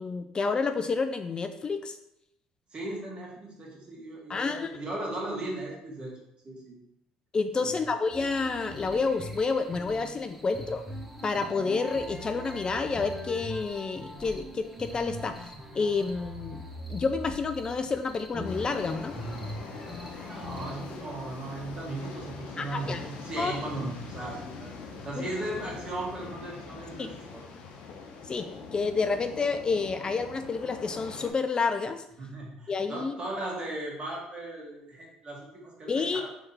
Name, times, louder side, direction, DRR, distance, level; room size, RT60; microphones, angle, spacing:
voice 1, 0.0-2.0 4.3-4.7 7.3-10.8 11.2-15.4 15.7-16.6 16.9-19.2 22.6-23.0 23.4-23.5 25.2-25.3 27.0-27.1 28.3-32.0 32.7-33.1 35.9-36.2, left 4 dB, 35° left, 8 dB, 0.4 m, -29 dB
voice 2, 2.7-6.1 6.4-6.8 7.6-7.8 20.2-24.7 25.0-27.4 32.2-36.3, right 2 dB, 40° right, -3 dB, 1.8 m, -37 dB
sound 1, 8.1-21.0, equal, 5° right, 1.0 m, -41 dB
sound 2, 18.4-31.3, left 4 dB, 70° left, 0.8 m, -43 dB
3.7 x 3.4 x 4.2 m, 0.81 s
supercardioid pair, 70°, 3 cm